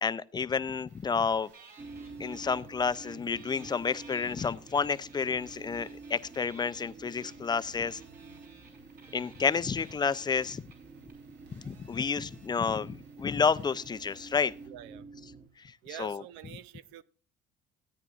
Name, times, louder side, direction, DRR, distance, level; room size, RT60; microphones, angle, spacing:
voice 1, 0.0-1.5 2.2-8.0 9.1-10.6 11.6-14.5 15.6-16.2, left 5 dB, 20° left, 0.5 m, -30 dB
sound 1, 0.9-14.7, right 4 dB, 70° right, 4.1 m, -63 dB
sound 2, 1.5-2.6 2.9-11.1, right 4 dB, 50° right, 5.8 m, -57 dB
sound 3, 1.8-15.5, right 4 dB, 25° right, 1.2 m, -49 dB
voice 2, 14.6-15.1 15.8-17.0, right 11 dB, 90° right, 0.8 m, -46 dB
17.0 x 9.7 x 2.5 m
cardioid pair, 120°, 19 cm